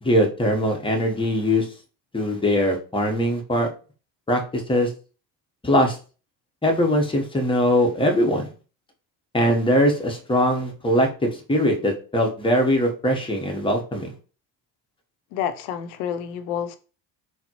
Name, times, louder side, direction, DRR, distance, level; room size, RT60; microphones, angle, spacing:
voice 1, 0.0-1.7 2.1-3.7 4.3-4.9 5.6-6.0 6.6-8.5 9.3-14.1, equal, 10° left, 0.8 m, -21 dB
voice 2, 15.3-16.8, left 9 dB, 85° left, 0.6 m, -29 dB
4.0 x 2.0 x 2.8 m
supercardioid pair, 75°, 48 cm